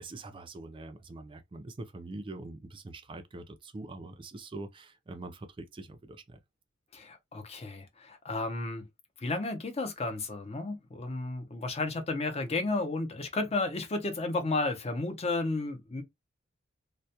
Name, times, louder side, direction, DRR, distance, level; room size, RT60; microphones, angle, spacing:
voice 1, 0.0-6.4, right 2 dB, 25° right, 0.4 m, -44 dB
voice 2, 6.9-8.8 9.2-16.0, left 2 dB, 30° left, 0.5 m, -33 dB
2.2 x 2.1 x 2.7 m
head